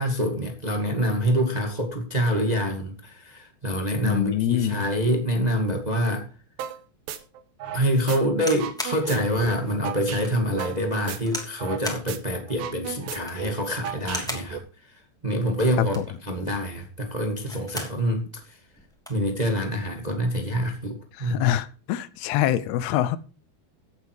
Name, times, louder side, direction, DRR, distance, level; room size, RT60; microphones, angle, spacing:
voice 1, 0.0-6.3 7.7-14.6 15.2-15.9 16.2-18.6 19.1-21.5, equal, 45° right, 3 dB, 0.5 m, -26 dB
voice 2, 4.0-4.8 15.8-16.1 21.2-23.2, left 11 dB, 75° left, 16 dB, 2.6 m, -25 dB
sound 1, 6.6-6.8 7.1-8.2 8.5-11.8 12.1-12.2 12.5-14.6, right 9 dB, 65° right, 2.7 m, -35 dB
sound 2, 8.4-9.0 9.6-9.7 10.2-10.3 11.3-11.6 11.8-12.1 13.1-13.5 14.0-14.5 15.7-16.2 17.3-18.0 18.4-18.5 18.7-19.2 20.1-20.3, equal, ahead, 2.0 m, -35 dB
16.0 x 7.9 x 4.8 m, 0.34 s
omnidirectional pair, 5.0 m